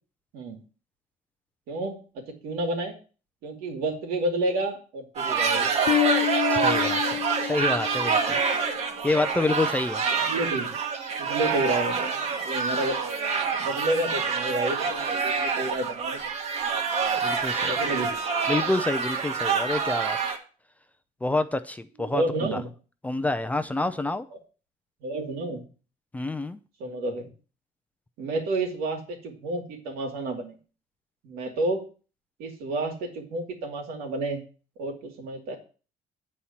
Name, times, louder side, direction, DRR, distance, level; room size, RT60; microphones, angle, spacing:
voice 1, 1.7-2.9 3.4-6.1 10.2-10.8 11.2-12.9 13.6-16.3 17.7-18.1 22.1-22.7 25.0-25.7 26.8-27.3 28.2-30.6 31.2-31.9 32.4-34.4 34.8-35.6, right 2 dB, 85° right, 2.5 m, -30 dB
sound 1, 5.2-20.4, right 5 dB, 45° right, 1.3 m, -27 dB
Bass guitar, 5.9-8.9, left 14 dB, 60° left, 0.5 m, -28 dB
voice 2, 6.5-8.4 9.0-10.0 17.2-17.7 18.5-20.2 21.2-22.6 23.0-24.3 26.1-26.6, left 2 dB, 10° left, 0.4 m, -28 dB
9.3 x 4.3 x 7.1 m
cardioid pair, 160°, 15 cm